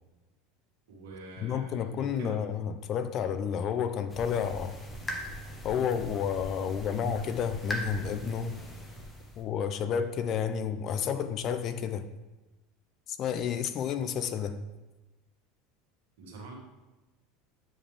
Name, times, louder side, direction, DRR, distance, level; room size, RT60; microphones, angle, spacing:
voice 1, 0.9-2.4 16.2-16.6, right 3 dB, 90° right, -2 dB, 2.0 m, -44 dB
voice 2, 1.4-4.8 5.6-8.6 9.4-12.1 13.1-14.6, left 7 dB, 40° left, 11 dB, 0.5 m, -31 dB
sound 1, 4.1-9.4, equal, 15° left, 1.1 m, -40 dB
9.7 x 5.1 x 3.4 m, 1.1 s
supercardioid pair, 125°, 0 cm